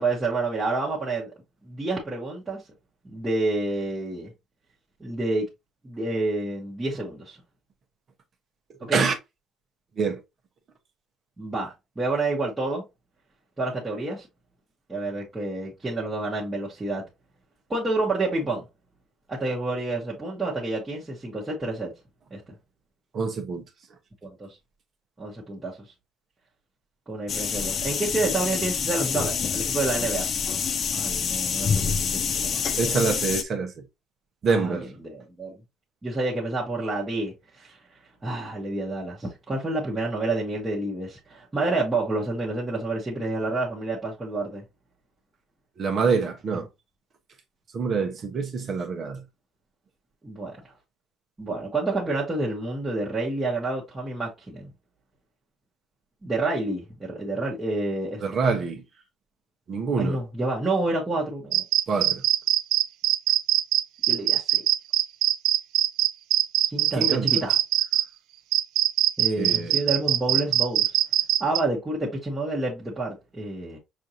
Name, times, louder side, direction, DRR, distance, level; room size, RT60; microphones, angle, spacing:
voice 1, 0.0-1.3 1.7-2.6 3.0-4.3 5.0-5.4 5.8-7.4 8.9-9.1 11.4-12.8 13.6-14.3 14.9-17.0 17.7-18.7 19.3-21.9 22.3-22.4 24.2-24.5 25.2-25.8 27.1-30.3 30.9-33.0 34.5-35.6 36.0-37.8 38.2-44.6 50.2-50.5 51.4-54.7 56.2-58.2 60.0-61.6 64.1-64.6 66.7-67.6 69.2-71.0 71.4-73.8, right 2 dB, 10° right, 1.2 m, -29 dB
voice 2, 23.1-23.6 32.8-33.7 34.4-34.9 45.8-46.7 47.7-49.2 58.2-58.8 59.7-60.2 61.9-62.2 66.9-67.3 69.4-69.8, right 5 dB, 30° right, 0.9 m, -25 dB
sound 1, 27.3-33.4, left 6 dB, 30° left, 0.3 m, -27 dB
sound 2, 61.5-68.0 68.5-71.6, right 14 dB, 70° right, 0.4 m, -22 dB
6.1 x 2.6 x 2.9 m
cardioid pair, 175°, 0 cm